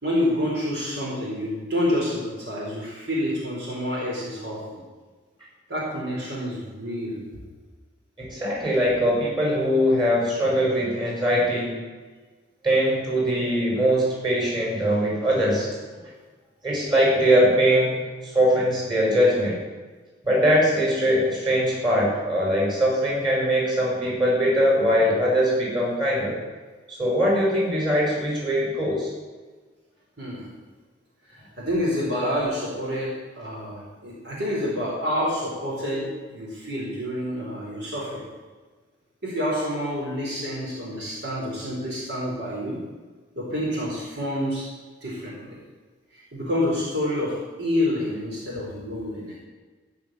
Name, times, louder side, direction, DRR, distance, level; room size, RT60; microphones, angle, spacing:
voice 1, 0.0-4.6 5.7-7.2 30.2-30.5 31.3-38.2 39.2-42.8 43.3-44.6 45.0-45.6 46.1-49.4, left 1 dB, 60° right, -5 dB, 4.4 m, -28 dB
voice 2, 8.2-11.8 12.6-15.7 16.6-19.6 20.2-26.4 26.9-29.1, equal, 25° right, -3 dB, 5.0 m, -21 dB
15.5 x 5.7 x 9.4 m, 1.3 s
head